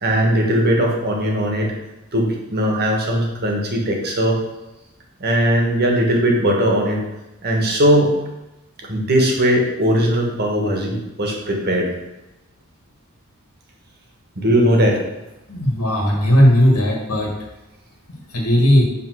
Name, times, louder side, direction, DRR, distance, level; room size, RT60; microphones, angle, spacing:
voice 1, 0.0-1.7 2.1-4.4 5.2-7.0 7.4-8.1 8.8-11.9 14.3-15.0, equal, 45° right, 0 dB, 1.6 m, -19 dB
voice 2, 15.5-17.3 18.3-18.8, equal, 90° left, -1 dB, 2.0 m, -16 dB
5.4 x 4.5 x 6.3 m, 0.97 s
head